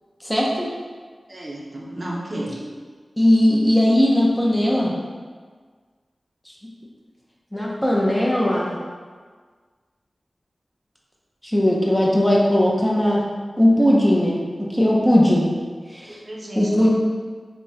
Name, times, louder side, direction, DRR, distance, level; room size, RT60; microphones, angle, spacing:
voice 1, 0.2-0.7 3.2-5.0 7.5-8.8 11.5-13.2 13.6-14.4 14.7-15.5 15.9-16.2 16.6-16.9, left 1 dB, 10° left, -3 dB, 0.6 m, -18 dB
voice 2, 1.3-2.6 16.1-16.9, right 1 dB, 45° right, -3 dB, 0.5 m, -32 dB
3.4 x 2.1 x 2.7 m, 1.5 s
cardioid pair, 45°, 0 cm